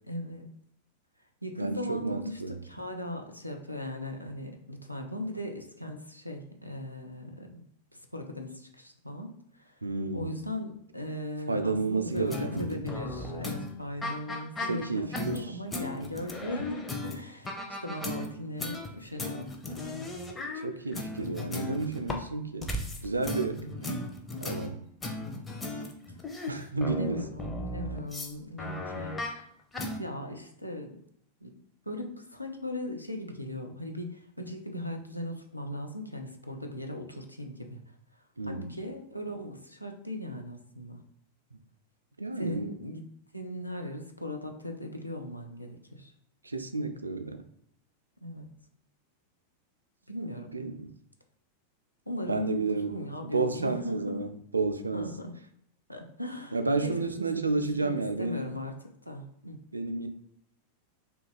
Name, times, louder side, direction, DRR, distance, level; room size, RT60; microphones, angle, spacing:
voice 1, 0.1-0.5 1.4-7.6 7.9-9.8 10.1-20.1 23.5-24.1 26.9-29.2 30.0-31.0 31.4-31.5 31.9-37.8 38.4-41.0 42.4-43.0 43.3-46.1 48.2-48.5 50.1-50.5 52.1-54.2 54.9-55.3 55.9-57.3 57.8-58.7 59.1-59.6, left 1 dB, 90° left, 3 dB, 0.5 m, -38 dB
voice 2, 1.6-2.6 9.8-10.5 11.5-12.8 14.7-15.5 20.5-23.7 24.4-24.8 26.5-27.2 38.4-38.8 42.2-42.7 46.4-47.4 50.5-50.9 52.3-52.9 53.2-55.1 56.5-58.6 59.7-60.1, right 3 dB, 80° right, 8 dB, 0.3 m, -31 dB
sound 1, 12.1-15.4 15.7-17.2 17.4-18.9 19.2-22.2 22.6-28.3 28.6-29.4 29.7-30.0, left 2 dB, 15° left, 0.5 m, -36 dB
2.7 x 2.3 x 4.0 m, 0.70 s
figure-of-eight pair, 90°, 0 cm